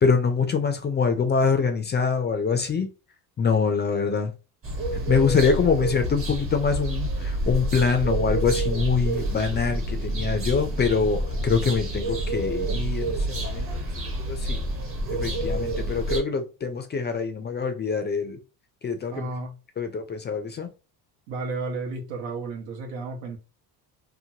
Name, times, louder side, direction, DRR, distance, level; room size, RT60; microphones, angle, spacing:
voice 1, 0.0-2.9 3.4-4.3 5.1-13.7 14.3-14.6 15.1-18.4 18.8-19.3 19.8-20.7, left 5 dB, 25° left, 0.3 m, -24 dB
sound 1, 4.6-16.2, right 1 dB, 30° right, 0.8 m, -28 dB
voice 2, 19.1-19.6 21.3-23.4, right 3 dB, 85° right, 1.0 m, -33 dB
2.9 x 2.1 x 2.7 m
cardioid pair, 105°, 44 cm